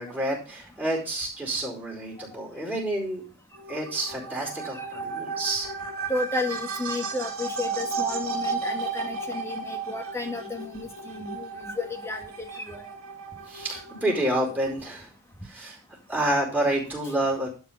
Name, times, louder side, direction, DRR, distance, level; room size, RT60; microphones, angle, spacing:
voice 1, 0.0-3.2 3.7-5.7 13.5-15.1 15.4-15.8 16.1-17.5, right 1 dB, 10° right, -3 dB, 4.5 m, -28 dB
sound 1, 3.5-14.8, right 4 dB, 70° right, 2.6 m, -34 dB
voice 2, 6.1-12.8, left 2 dB, 15° left, 3 dB, 1.7 m, -33 dB
12.0 x 4.8 x 5.7 m, 0.36 s
head